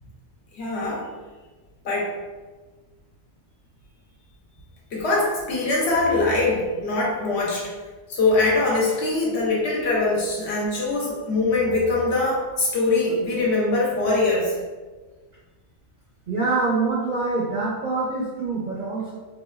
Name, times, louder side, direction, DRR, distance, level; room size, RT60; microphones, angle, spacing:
voice 1, 0.5-1.1 1.8-2.1 4.9-7.7 8.1-14.5, left 2 dB, 70° left, -4 dB, 1.1 m, -22 dB
voice 2, 16.3-19.1, right 3 dB, 55° right, -5 dB, 0.6 m, -25 dB
4.0 x 2.3 x 2.2 m, 1.3 s
omnidirectional pair, 1.2 m